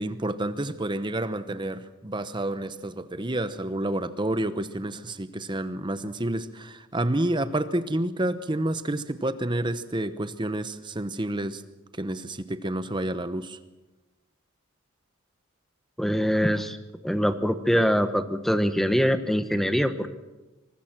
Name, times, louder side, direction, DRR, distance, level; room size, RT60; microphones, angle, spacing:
voice 1, 0.0-11.6 11.9-13.6, right 1 dB, 20° right, 12 dB, 0.9 m, -29 dB
voice 2, 16.0-16.8 17.0-20.1, equal, ahead, 9 dB, 1.1 m, -23 dB
24.0 x 20.0 x 6.1 m, 1.1 s
head